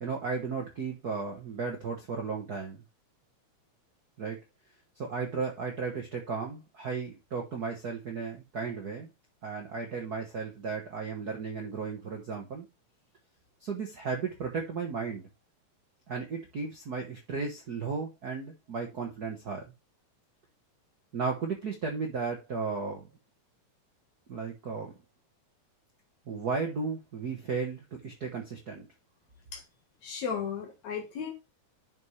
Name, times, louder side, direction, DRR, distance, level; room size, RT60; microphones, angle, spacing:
voice 1, 0.0-2.8 4.2-4.4 5.0-9.1 9.4-12.6 13.6-15.3 16.1-19.6 21.1-23.1 24.3-24.9 26.3-28.9, right 5 dB, 45° right, 1.3 m, -35 dB
voice 2, 30.0-31.3, left 7 dB, 70° left, 2.7 m, -35 dB
10.5 x 5.6 x 3.2 m
omnidirectional pair, 3.4 m